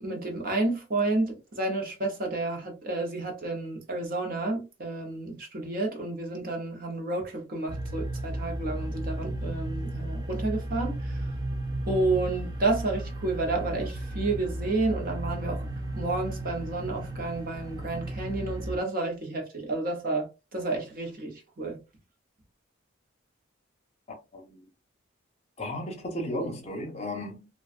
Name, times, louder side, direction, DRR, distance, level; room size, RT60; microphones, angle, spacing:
voice 1, 0.0-11.3 11.9-15.7 15.9-21.8, right 2 dB, 45° right, 0.7 m, -30 dB
sound 1, 7.7-18.8, right 1 dB, 20° right, 0.4 m, -34 dB
voice 2, 24.3-24.7 25.6-27.5, left 1 dB, 30° left, 0.6 m, -34 dB
2.5 x 2.2 x 2.4 m
head